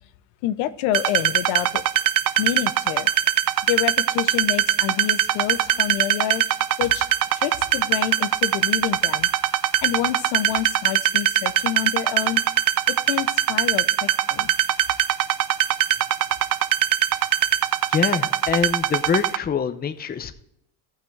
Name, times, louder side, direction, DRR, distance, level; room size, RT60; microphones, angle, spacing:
voice 1, 0.4-1.8 2.4-3.1 3.6-6.4 6.8-7.1 7.4-9.3 9.8-12.4 13.1-14.5, left 12 dB, 75° left, 12 dB, 0.8 m, -27 dB
sound 1, 0.9-19.4, right 12 dB, 45° right, 0.6 m, -21 dB
voice 2, 17.9-20.3, left 7 dB, 20° left, 10 dB, 0.6 m, -25 dB
14.0 x 6.0 x 3.2 m, 0.78 s
supercardioid pair, 100°, 46 cm